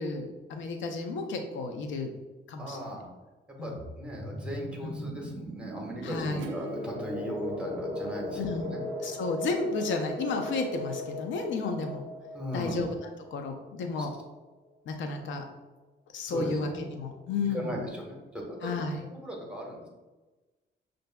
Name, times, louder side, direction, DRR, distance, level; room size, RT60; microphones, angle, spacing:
voice 1, 0.0-2.1 2.5-2.9 3.6-3.8 4.8-5.1 6.0-6.4 8.4-8.7 9.0-12.0 12.5-14.1 14.9-15.4 16.1-17.8 18.6-19.1, left 3 dB, 70° left, 5 dB, 0.5 m, -32 dB
voice 2, 2.6-3.1 3.6-8.8 12.3-12.8 16.3-16.8 17.5-18.8 19.1-19.8, equal, 5° right, -2 dB, 1.2 m, -38 dB
sound 1, 3.8-14.2, equal, 20° right, 1.2 m, -38 dB
Acoustic guitar / Strum, 6.4-11.9, right 1 dB, 75° right, 0.4 m, -48 dB
6.5 x 2.6 x 2.2 m, 1.2 s
cardioid pair, 90°, 20 cm